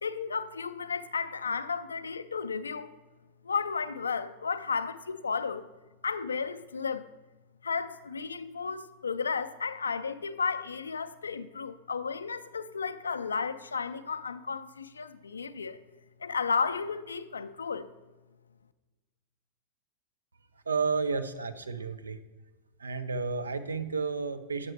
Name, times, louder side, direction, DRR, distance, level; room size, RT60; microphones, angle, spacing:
voice 1, 0.0-2.9 3.4-5.7 6.0-7.0 7.6-15.8 16.2-17.9, left 5 dB, 75° left, 0.4 m, -33 dB
voice 2, 20.7-22.2 22.8-24.7, right 4 dB, 75° right, 0.5 m, -31 dB
8.3 x 5.9 x 4.5 m
figure-of-eight pair, 90°, 0 cm